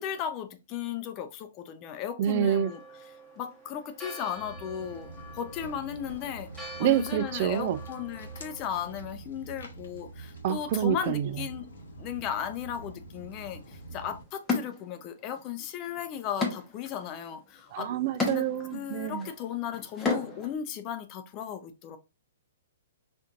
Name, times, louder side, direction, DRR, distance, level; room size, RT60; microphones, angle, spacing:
voice 1, 0.0-2.8 3.1-11.7 12.0-17.9 18.2-22.0, left 9 dB, 30° left, 0.5 m, -36 dB
voice 2, 2.2-2.7 6.8-7.8 10.4-11.3 17.7-19.3, right 10 dB, 45° right, 0.3 m, -27 dB
Church bell, 2.3-9.0, right 1 dB, 5° right, 1.2 m, -47 dB
Walk footsteps, 4.3-14.2, right 2 dB, 80° left, 1.0 m, -45 dB
sound 1, 13.7-13.8 14.5-15.4 15.7-20.5, left 4 dB, 15° left, 0.9 m, -33 dB
4.4 x 2.5 x 2.5 m
hypercardioid pair, 135°, 0 cm